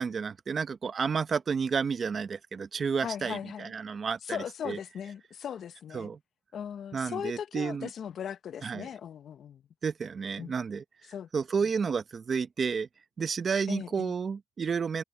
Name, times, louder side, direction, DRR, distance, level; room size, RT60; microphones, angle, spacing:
voice 1, 0.0-4.8 5.9-6.2 6.9-7.9 8.6-8.9 9.8-10.8 11.3-12.9 13.2-15.0, right 6 dB, 45° right, 0.9 m, -31 dB
voice 2, 3.0-3.7 4.2-6.1 6.5-9.6 10.4-10.5 11.1-11.3 13.7-14.1, left 8 dB, 60° left, 0.7 m, -38 dB
cardioid pair, 90°, 0 cm